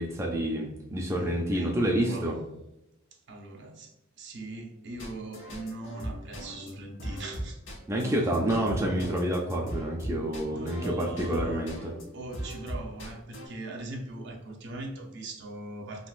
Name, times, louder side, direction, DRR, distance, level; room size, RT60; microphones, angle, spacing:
voice 1, 0.0-2.3 7.9-11.9, right 1 dB, 15° right, -1 dB, 0.3 m, -28 dB
voice 2, 1.5-2.3 3.1-7.6 10.5-11.6 12.1-16.1, right 2 dB, 60° right, 2 dB, 0.6 m, -40 dB
sound 1, 5.0-12.0 12.3-13.5, right 1 dB, 85° left, 1.1 m, -38 dB
3.7 x 2.4 x 2.4 m, 0.91 s
head